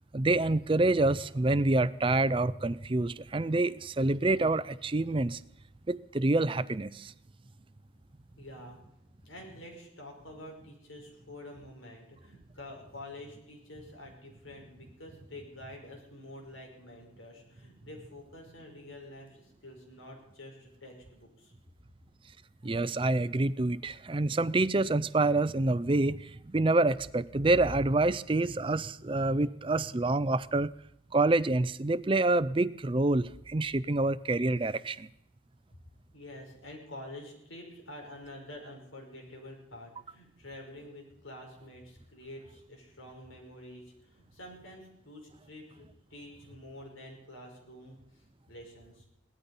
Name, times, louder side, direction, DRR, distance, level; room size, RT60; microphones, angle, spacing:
voice 1, 0.1-5.4 5.9-7.1 22.6-30.7 31.1-35.1, right 2 dB, 25° right, 16 dB, 0.5 m, -27 dB
voice 2, 8.4-8.8 9.2-21.5 36.1-49.1, left 1 dB, 90° left, 1 dB, 5.3 m, -48 dB
18.0 x 13.0 x 5.5 m, 0.81 s
head